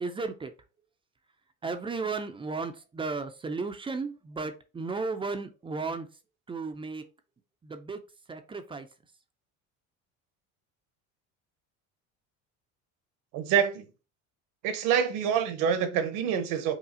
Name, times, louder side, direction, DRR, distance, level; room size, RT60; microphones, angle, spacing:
voice 1, 0.0-0.5 1.6-6.1 6.5-7.0 7.6-8.0 8.3-8.9, right 4 dB, 15° right, 0.3 m, -34 dB
voice 2, 13.3-13.9 14.6-16.7, right 8 dB, 80° right, 0.9 m, -26 dB
5.5 x 2.4 x 2.6 m
cardioid pair, 125°, 33 cm